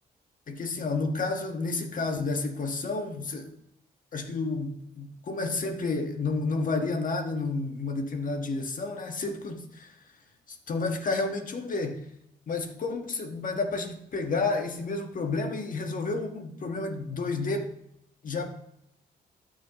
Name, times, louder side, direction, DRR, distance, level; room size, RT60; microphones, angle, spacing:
voice 1, 0.5-3.5 4.1-9.9 10.5-12.0 12.5-17.7 18.2-18.5, left 3 dB, 50° left, 5 dB, 1.4 m, -30 dB
13.0 x 6.1 x 3.0 m, 0.76 s
cardioid pair, 80°, 17 cm